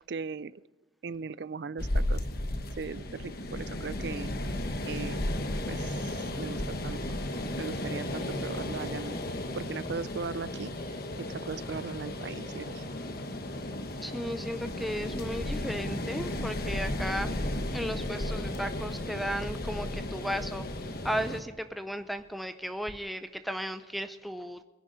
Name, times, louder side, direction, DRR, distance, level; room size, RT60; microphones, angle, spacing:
voice 1, 0.1-0.6 1.0-2.2 2.8-4.3 4.9-5.3 5.7-7.2 7.6-9.2 9.5-12.9, right 5 dB, 60° right, 19 dB, 0.4 m, -39 dB
sound 1, 1.8-21.4, left 1 dB, 55° left, 1.2 m, -34 dB
voice 2, 14.0-17.3 17.7-20.7 21.0-24.6, equal, ahead, 8 dB, 0.5 m, -35 dB
22.0 x 10.5 x 4.0 m, 1.3 s
head